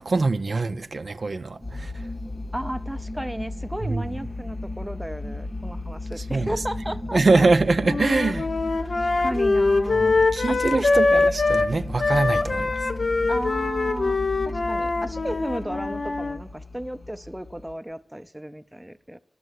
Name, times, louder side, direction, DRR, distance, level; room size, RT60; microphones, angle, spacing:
voice 1, 0.0-1.9 3.8-4.0 6.3-6.5 7.1-8.5 10.3-12.8, right 3 dB, 65° right, 0.5 m, -23 dB
sound 1, 1.6-17.7, left 2 dB, 35° left, 0.8 m, -35 dB
voice 2, 2.5-7.5 8.8-10.2 10.5-10.9 13.3-14.2 14.5-19.2, right 1 dB, 10° right, 0.5 m, -33 dB
sound 2, 7.8-11.7 12.0-16.4, left 3 dB, 65° left, 0.8 m, -23 dB
11.0 x 7.5 x 7.9 m
wide cardioid pair, 65°, 0 cm